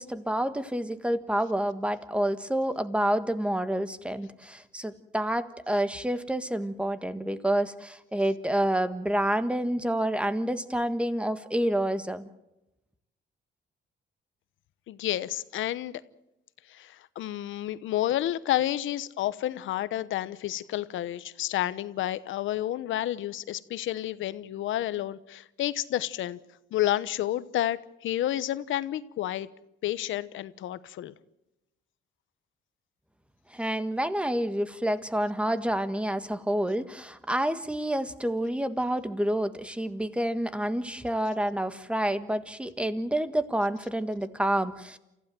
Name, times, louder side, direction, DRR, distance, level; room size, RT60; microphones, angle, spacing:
voice 1, 0.0-12.3 33.5-45.0, right 1 dB, 5° right, 11 dB, 1.6 m, -28 dB
voice 2, 14.9-16.0 16.7-26.4 26.7-29.5 29.8-31.1, left 13 dB, 80° left, 15 dB, 1.0 m, -30 dB
28.0 x 15.5 x 7.7 m, 0.92 s
cardioid pair, 90°, 20 cm